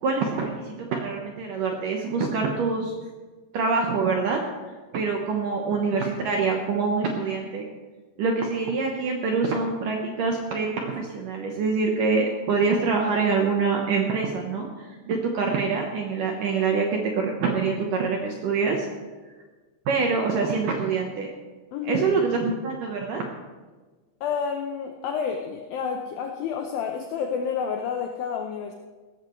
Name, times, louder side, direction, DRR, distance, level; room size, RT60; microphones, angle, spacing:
voice 1, 0.0-2.9 3.5-4.4 4.9-7.7 8.2-18.9 19.9-21.3 21.8-23.2, right 4 dB, 70° right, 1 dB, 2.1 m, -25 dB
voice 2, 21.7-22.1 24.2-28.7, left 6 dB, 80° left, 4 dB, 2.1 m, -29 dB
17.0 x 14.0 x 3.2 m, 1.3 s
omnidirectional pair, 5.2 m